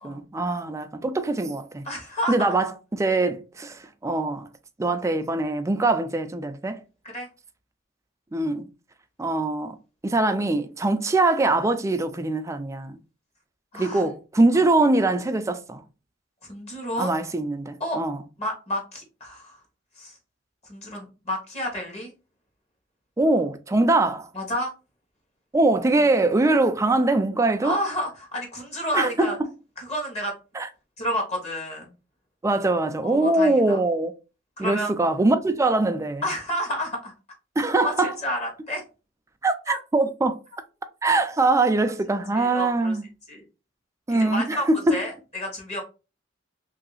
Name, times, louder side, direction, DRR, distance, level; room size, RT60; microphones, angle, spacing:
voice 1, 0.0-1.8 2.3-4.5 4.8-6.8 8.3-8.7 9.2-9.8 10.0-13.0 13.7-15.8 17.0-18.2 23.2-24.3 25.5-27.8 28.9-29.4 30.5-30.7 32.4-34.1 34.6-36.3 37.6-38.2 39.4-40.4 41.0-43.0 44.1-45.1, right 2 dB, 15° right, 0.4 m, -23 dB
voice 2, 1.8-2.3 7.0-7.3 13.7-14.0 14.5-14.6 16.5-17.1 17.8-18.0 18.4-19.6 20.0-20.1 20.7-22.1 24.3-24.7 27.6-29.4 29.8-30.3 31.0-31.9 33.0-33.8 34.6-34.9 36.2-37.1 37.8-38.8 39.7-39.8 42.3-42.9 43.3-43.4 44.1-45.8, equal, 35° left, 1.2 m, -30 dB
3.1 x 2.7 x 4.0 m
head